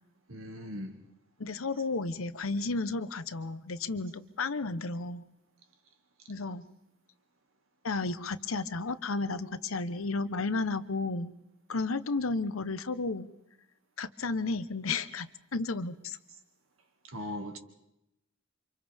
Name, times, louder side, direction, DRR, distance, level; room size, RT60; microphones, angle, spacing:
voice 1, 0.3-1.0 17.1-17.6, left 1 dB, 85° right, 2.2 m, -39 dB
voice 2, 1.4-5.2 6.3-6.6 7.8-11.3 11.7-13.3 14.0-16.2, left 3 dB, 85° left, 1.0 m, -33 dB
29.5 x 26.0 x 3.6 m
head